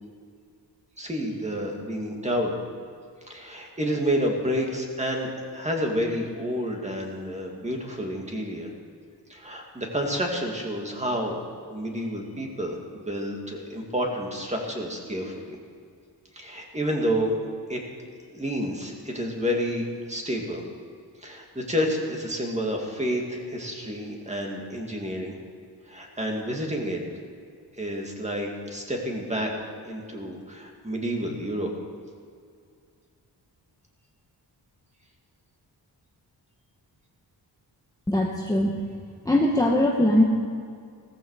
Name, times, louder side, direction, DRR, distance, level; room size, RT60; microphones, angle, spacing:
voice 1, 1.0-2.6 3.3-8.7 9.3-15.6 16.3-17.3 17.7-17.8 18.3-20.6 21.2-25.3 25.9-27.0 27.8-29.5 29.8-31.7, equal, 15° right, 0 dB, 2.3 m, -29 dB
voice 2, 38.1-38.7 39.2-40.2, left 1 dB, 10° left, -1 dB, 1.1 m, -21 dB
16.5 x 14.0 x 4.9 m, 2.3 s
wide cardioid pair, 140°, 41 cm